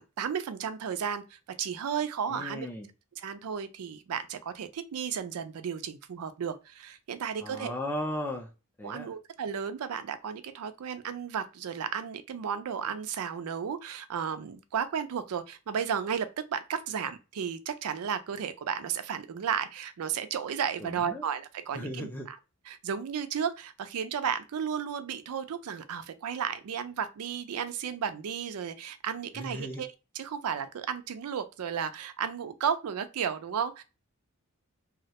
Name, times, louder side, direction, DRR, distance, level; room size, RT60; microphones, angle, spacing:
voice 1, 0.0-2.7 3.2-7.7 8.8-22.4 22.7-29.9 30.1-33.8, right 7 dB, 75° right, 0.4 m, -33 dB
voice 2, 2.3-2.9 7.4-8.5 8.8-9.1 20.8-21.3 21.7-22.3 29.3-29.8, left 1 dB, 10° left, 0.4 m, -36 dB
2.3 x 2.1 x 2.7 m
head